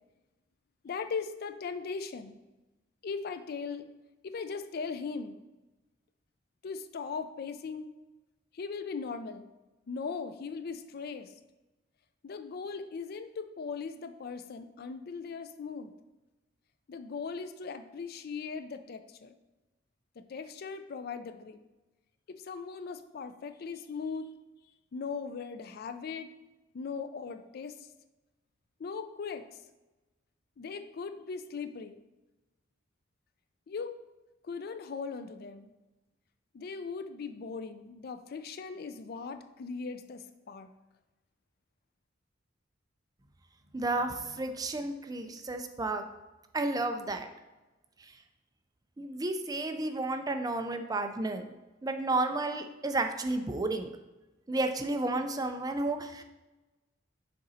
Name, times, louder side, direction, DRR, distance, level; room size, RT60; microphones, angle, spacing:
voice 1, 0.8-2.4 3.0-3.9 4.2-5.4 6.6-7.9 8.5-9.5 9.9-11.3 12.2-15.9 16.9-19.4 20.2-21.6 22.4-24.3 24.9-26.3 26.7-27.9 28.8-29.4 30.6-32.0 33.7-34.0 34.4-35.7 36.5-40.7, left 5 dB, 55° left, 10 dB, 0.4 m, -39 dB
voice 2, 43.7-46.0 46.5-47.3 49.0-51.4 51.8-53.9 54.5-56.2, right 2 dB, 20° right, 7 dB, 0.4 m, -32 dB
6.6 x 3.9 x 4.1 m, 1.1 s
head